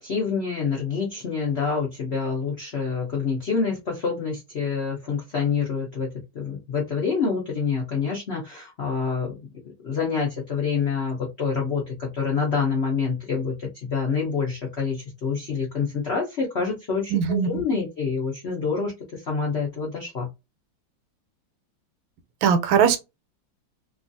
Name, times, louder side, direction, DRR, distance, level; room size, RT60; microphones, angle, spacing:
voice 1, 0.0-6.1 6.3-9.4 9.8-20.3, left 5 dB, 70° left, 0.6 m, -27 dB
voice 2, 17.1-17.5 22.4-23.0, right 8 dB, 85° right, 1.4 m, -19 dB
3.0 x 2.4 x 2.5 m
omnidirectional pair, 2.1 m